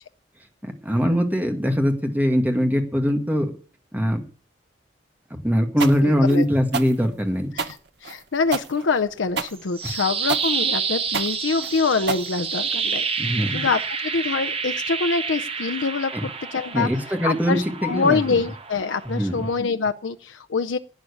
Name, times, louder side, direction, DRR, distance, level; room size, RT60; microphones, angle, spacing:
voice 1, 0.6-3.5 3.9-4.2 5.3-7.5 13.2-13.6 16.1-16.2 16.7-18.4 19.1-19.5, equal, 10° right, 5 dB, 1.9 m, -22 dB
sound 1, 5.8-12.9, right 5 dB, 60° right, 1.0 m, -30 dB
voice 2, 6.0-6.4 7.5-7.8 8.0-16.9 17.2-20.8, left 4 dB, 75° left, 9 dB, 0.6 m, -25 dB
sound 2, 9.5-19.6, right 5 dB, 30° right, 1.2 m, -29 dB
11.5 x 9.4 x 8.4 m, 0.41 s
head